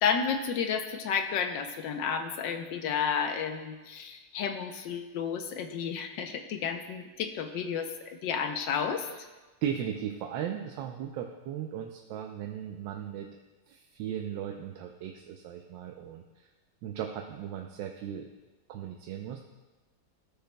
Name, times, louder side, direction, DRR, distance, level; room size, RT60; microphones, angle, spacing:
voice 1, 0.0-7.9 8.2-9.1, left 6 dB, 80° left, 6 dB, 1.3 m, -31 dB
voice 2, 9.6-13.3 13.7-16.5 16.8-18.3 18.7-19.4, right 9 dB, 85° right, 2 dB, 1.3 m, -37 dB
14.5 x 6.8 x 2.2 m, 1.2 s
omnidirectional pair, 2.0 m